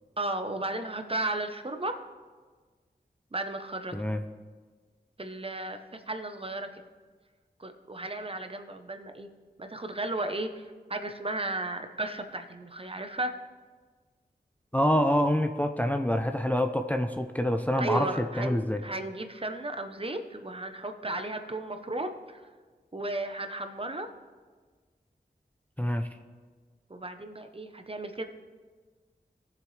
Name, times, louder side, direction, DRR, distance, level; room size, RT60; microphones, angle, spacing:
voice 1, 0.2-1.9 3.3-3.9 5.2-6.8 7.6-9.3 9.6-13.3 17.8-22.5 22.9-24.1 26.9-28.2, right 2 dB, 35° right, 7 dB, 0.8 m, -34 dB
voice 2, 14.7-18.8 25.8-26.1, equal, 10° left, 6 dB, 0.5 m, -26 dB
17.5 x 7.0 x 3.2 m, 1.4 s
wide cardioid pair, 70°, 17 cm